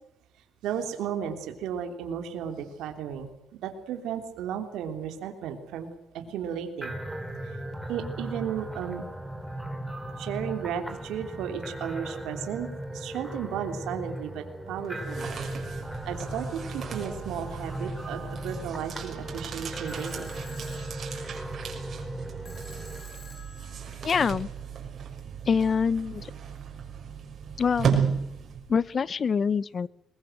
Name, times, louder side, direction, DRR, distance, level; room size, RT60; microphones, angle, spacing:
voice 1, 0.6-5.9 6.1-6.9 7.4-7.6 7.9-9.1 10.2-15.3 15.7-20.3, right 8 dB, 90° right, 5 dB, 3.3 m, -34 dB
sound 1, 6.8-23.0, right 1 dB, 5° right, 4.1 m, -37 dB
sound 2, 14.8-28.9, right 7 dB, 55° right, 6.2 m, -35 dB
sound 3, 19.9-24.9, left 2 dB, 25° left, 6.8 m, -51 dB
voice 2, 24.0-24.5 25.5-26.3 27.6-28.0 28.7-29.9, left 6 dB, 45° left, 19 dB, 0.8 m, -25 dB
22.5 x 21.5 x 7.9 m, 0.79 s
cardioid pair, 90°, 0 cm